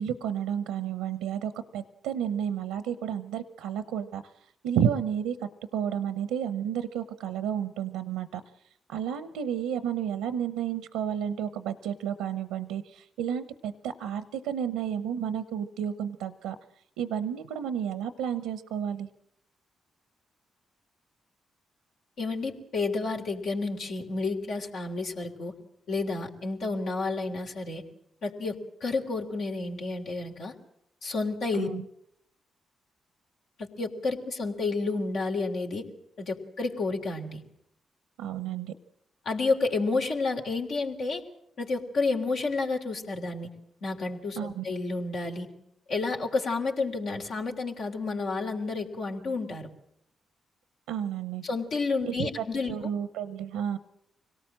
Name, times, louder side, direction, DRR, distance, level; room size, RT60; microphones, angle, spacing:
voice 1, 0.0-8.4 8.9-16.6 17.0-19.1 31.5-31.8 38.2-38.7 44.4-44.6 50.9-51.4 52.1-53.8, right 9 dB, 85° right, 13 dB, 0.9 m, -31 dB
voice 2, 22.2-25.5 25.9-27.8 28.2-30.5 31.0-31.7 33.6-35.9 36.2-37.4 39.2-41.2 41.6-43.5 43.8-45.5 45.9-49.7 51.4-52.8, left 3 dB, 70° left, 1 dB, 3.4 m, -30 dB
25.0 x 18.0 x 7.6 m, 0.74 s
hypercardioid pair, 45°, 0 cm